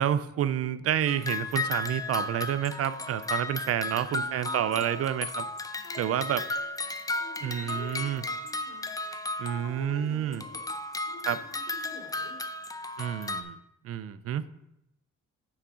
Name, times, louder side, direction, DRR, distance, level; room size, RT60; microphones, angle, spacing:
voice 1, 0.0-5.5 6.0-6.4 7.4-8.2 9.4-10.4 11.3-11.4 13.0-13.6 13.8-14.5, right 10 dB, 50° right, 15 dB, 0.4 m, -29 dB
sound 1, 1.1-9.9 10.3-13.4, left 2 dB, 10° left, 0.5 m, -34 dB
voice 2, 3.8-5.0 5.8-6.7 7.1-8.9 9.4-10.6 11.0-12.4, left 2 dB, 60° left, -4 dB, 3.0 m, -48 dB
8.7 x 3.6 x 4.9 m, 0.83 s
cardioid pair, 90°, 30 cm